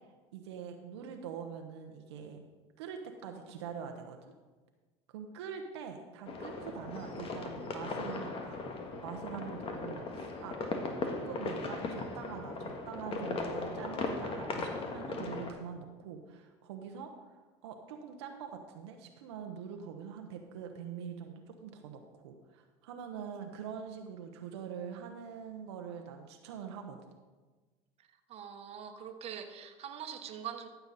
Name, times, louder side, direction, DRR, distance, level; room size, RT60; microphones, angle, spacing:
voice 1, 0.3-2.4 2.8-4.2 5.1-8.6 9.0-10.6 11.0-17.1 17.6-27.0, right 7 dB, 85° right, 4 dB, 0.9 m, -44 dB
sound 1, 6.3-15.5, left 3 dB, 40° left, 1.6 m, -38 dB
voice 2, 28.0-30.7, right 8 dB, 50° right, 6 dB, 1.2 m, -43 dB
14.0 x 6.9 x 4.1 m, 1.3 s
hypercardioid pair, 85°, 14 cm